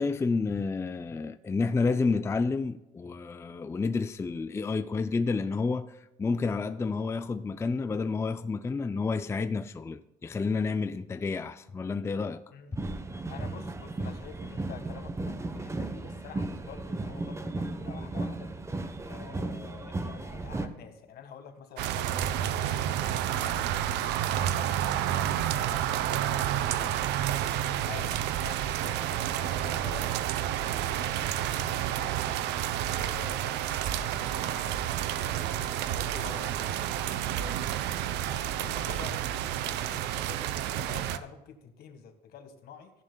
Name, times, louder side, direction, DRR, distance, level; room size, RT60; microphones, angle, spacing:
voice 1, 0.0-12.4, left 4 dB, 15° left, 0.4 m, -30 dB
sound 1, 12.7-20.7, right 2 dB, 15° right, 1.0 m, -35 dB
voice 2, 13.3-18.5 19.0-27.0 27.6-37.5 38.3-42.9, left 7 dB, 65° left, 1.7 m, -48 dB
sound 2, 21.8-41.2, right 11 dB, 85° right, 0.7 m, -30 dB
15.0 x 10.5 x 2.3 m
cardioid pair, 110°, 17 cm